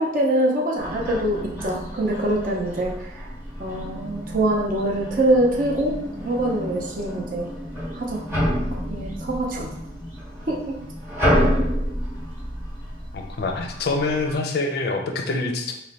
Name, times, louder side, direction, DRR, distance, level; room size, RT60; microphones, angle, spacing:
voice 1, 0.0-2.9 3.6-6.0 6.2-7.5 7.9-8.2 8.7-9.7 10.5-10.8 11.2-11.4, right 1 dB, 45° right, -2 dB, 0.6 m, -24 dB
sound 1, 0.8-14.4, equal, 10° right, 0.8 m, -29 dB
voice 2, 13.1-15.7, left 3 dB, 50° left, 3 dB, 0.4 m, -25 dB
3.1 x 2.1 x 4.0 m, 0.80 s
head